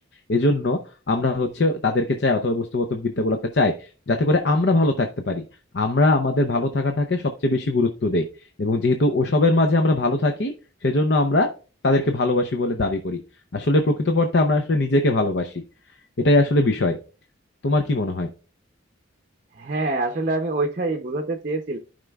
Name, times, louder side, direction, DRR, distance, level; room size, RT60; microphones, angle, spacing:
voice 1, 0.3-0.8 1.1-5.4 5.7-8.3 8.6-10.5 10.8-11.5 11.8-13.2 13.5-15.5 16.2-17.0 17.6-18.3, left 2 dB, 55° left, 5 dB, 0.6 m, -21 dB
voice 2, 19.6-21.8, right 2 dB, 40° right, 3 dB, 0.6 m, -25 dB
14.5 x 5.1 x 2.3 m, 0.37 s
head